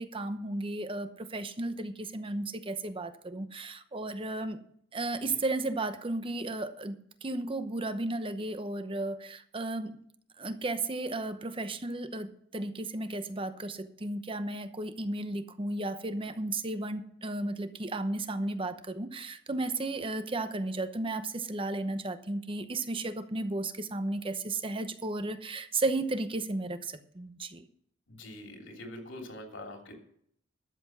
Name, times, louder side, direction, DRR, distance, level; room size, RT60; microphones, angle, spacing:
voice 1, 0.0-4.6 4.9-9.9 10.4-27.7, right 2 dB, 30° right, 10 dB, 0.9 m, -34 dB
voice 2, 28.1-29.9, left 1 dB, 75° left, 2 dB, 3.1 m, -44 dB
12.5 x 7.6 x 6.1 m, 0.66 s
head